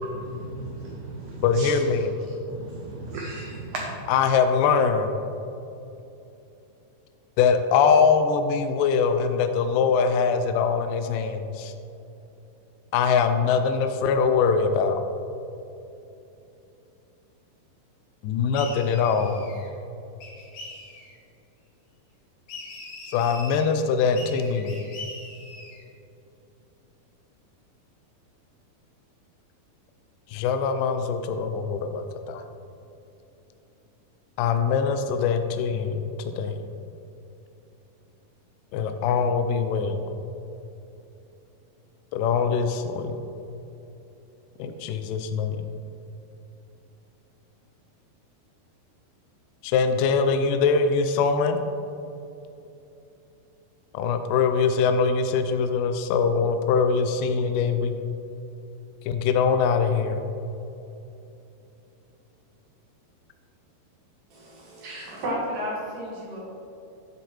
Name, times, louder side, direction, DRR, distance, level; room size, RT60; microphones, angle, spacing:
voice 1, 0.0-1.7 2.5-4.0, right 2 dB, 80° right, -1 dB, 1.7 m, -36 dB
voice 2, 1.4-2.1 4.1-5.1 7.4-11.7 12.9-15.1 18.2-19.5 23.1-24.8 30.3-32.4 34.4-36.6 38.7-40.0 42.1-43.1 44.6-45.7 49.6-51.6 53.9-58.0 59.1-60.3, left 5 dB, 85° left, 7 dB, 1.9 m, -23 dB
sound 1, 18.5-19.7 20.2-21.2 22.5-23.7 24.2-25.8, left 2 dB, 65° left, 3.1 m, -41 dB
voice 3, 64.3-66.4, equal, 65° right, -5 dB, 3.1 m, -32 dB
9.9 x 7.4 x 3.1 m, 2.8 s
omnidirectional pair, 4.4 m